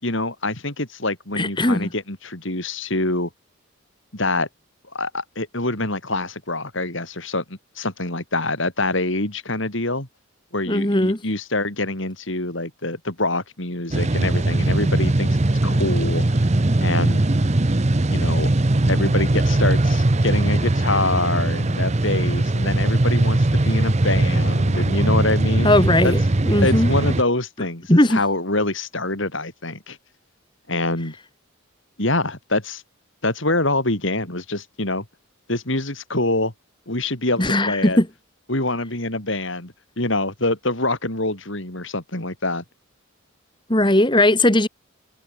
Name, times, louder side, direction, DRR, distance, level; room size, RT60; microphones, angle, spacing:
voice 1, 0.0-3.3 4.1-4.5 4.9-10.1 10.5-15.4 15.6-16.4 16.8-17.2 18.1-18.5 18.9-25.7 26.0-26.1 26.6-30.0 30.7-31.1 32.0-32.8 33.2-35.0 35.5-36.5 36.9-38.0 38.5-42.6, left 2 dB, 60° left, 4.6 m, -25 dB
voice 2, 1.4-1.9 10.7-11.2 25.6-26.9 27.9-28.2 37.4-38.1 43.7-44.7, left 1 dB, 20° left, 2.4 m, -18 dB
sound 1, 13.9-27.2, right 2 dB, 30° right, 0.8 m, -20 dB
head